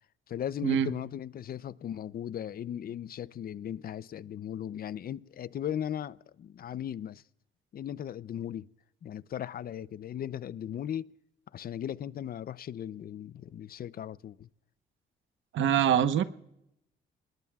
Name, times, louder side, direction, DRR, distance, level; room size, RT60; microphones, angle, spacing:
voice 1, 0.3-7.2 7.7-8.7 9.0-11.1 11.5-14.5, left 10 dB, 50° left, 0.5 m, -37 dB
voice 2, 15.5-16.2, right 9 dB, 75° right, 1.0 m, -24 dB
27.0 x 20.5 x 2.3 m
cardioid pair, 90°, 20 cm